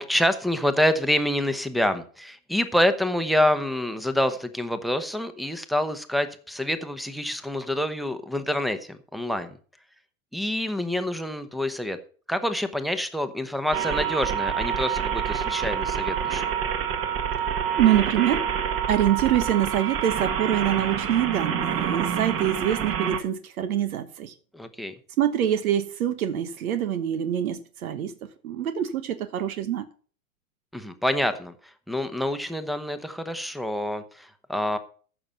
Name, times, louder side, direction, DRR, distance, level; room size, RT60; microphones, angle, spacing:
voice 1, 0.0-9.6 10.3-12.0 12.3-16.4 24.5-24.9 30.7-34.8, left 1 dB, ahead, 0.9 m, -27 dB
sound 1, 13.7-23.2, right 8 dB, 30° right, 1.6 m, -27 dB
voice 2, 17.8-18.5 18.9-24.3 25.2-28.1 28.4-29.8, right 11 dB, 75° right, 1.3 m, -25 dB
14.5 x 6.1 x 5.6 m
hypercardioid pair, 125°, 43 cm